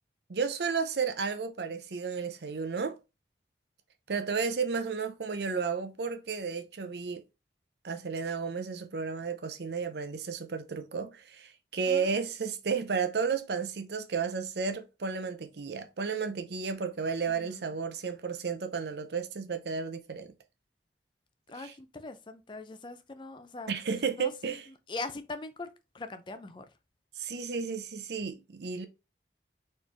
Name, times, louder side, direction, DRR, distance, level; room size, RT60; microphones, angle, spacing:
voice 1, 0.3-3.0 4.1-7.2 7.8-20.3 21.5-21.7 23.7-24.7 27.2-28.9, right 5 dB, 70° right, 0.6 m, -33 dB
voice 2, 11.9-12.2 17.4-17.7 21.5-23.7 24.2-24.6 24.9-25.7 25.9-26.6, left 3 dB, 25° left, 0.4 m, -41 dB
4.4 x 3.2 x 3.3 m
head